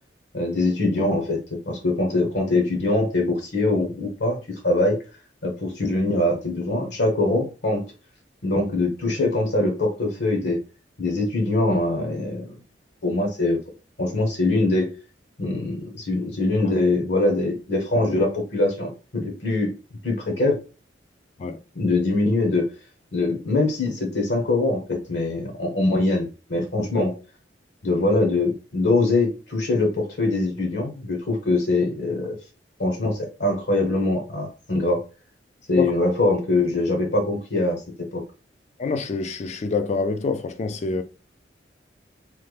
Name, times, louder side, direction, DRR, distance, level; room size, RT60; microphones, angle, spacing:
voice 1, 0.3-5.0 5.4-7.8 8.4-10.6 11.0-12.5 13.0-13.6 14.0-14.9 15.4-19.7 20.0-20.6 21.7-22.7 23.1-27.1 27.8-32.4 32.8-35.0 35.7-37.8 38.1-38.2, left 2 dB, 70° left, 0.9 m, -23 dB
voice 2, 38.8-41.0, left 4 dB, 40° left, 0.4 m, -26 dB
3.1 x 2.1 x 3.2 m
head